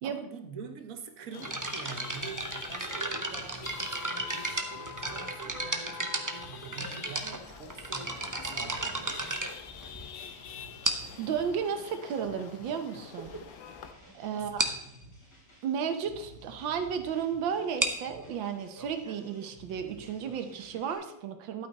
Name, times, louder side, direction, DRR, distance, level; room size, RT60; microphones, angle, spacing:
voice 1, 0.0-9.6 14.3-14.9, right 5 dB, 50° right, 7 dB, 1.3 m, -46 dB
Chatter / Vehicle horn car horn honking / Traffic noise roadway noise, 1.3-13.9, left 8 dB, 85° left, 1.6 m, -46 dB
sound 1, 1.4-10.2 10.8-11.3 12.1-12.2 12.8-12.9 13.2-13.4 13.7-13.8 14.1-14.2 14.6-14.9 17.6-21.0, right 2 dB, 25° right, 0.4 m, -35 dB
sound 2, 1.6-20.9, equal, 60° left, 4.5 m, -55 dB
voice 2, 10.2-10.7 11.2-13.3 14.1-14.7 15.6-21.7, right 7 dB, 80° right, 7 dB, 1.7 m, -33 dB
12.5 x 8.8 x 4.1 m, 0.79 s
omnidirectional pair, 2.1 m